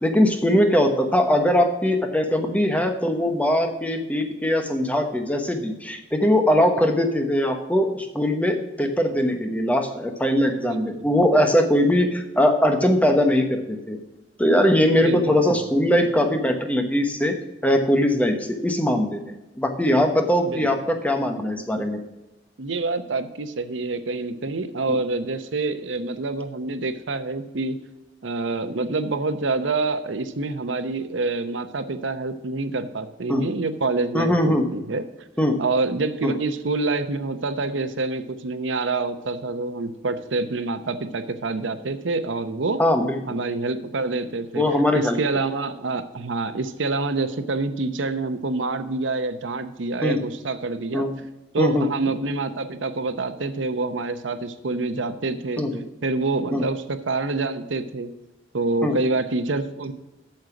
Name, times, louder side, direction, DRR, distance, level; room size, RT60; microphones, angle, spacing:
voice 1, 0.0-14.0 14.4-17.4 17.6-22.0 24.9-25.0 33.3-33.5 34.1-34.7 35.4-35.6 36.2-36.3 42.8-43.2 44.6-45.2 50.0-50.2 50.9-51.1 51.6-51.9 55.6-55.8 56.5-56.6 58.8-59.0, left 1 dB, 10° left, 5 dB, 1.1 m, -21 dB
voice 2, 10.6-11.1 15.0-15.2 15.5-15.6 20.4-20.9 22.6-27.8 28.2-35.1 35.6-42.8 43.3-44.6 44.9-51.0 51.5-55.6 56.0-58.1 58.5-59.9, right 3 dB, 80° right, 11 dB, 0.8 m, -27 dB
8.8 x 6.5 x 5.9 m, 1.0 s
head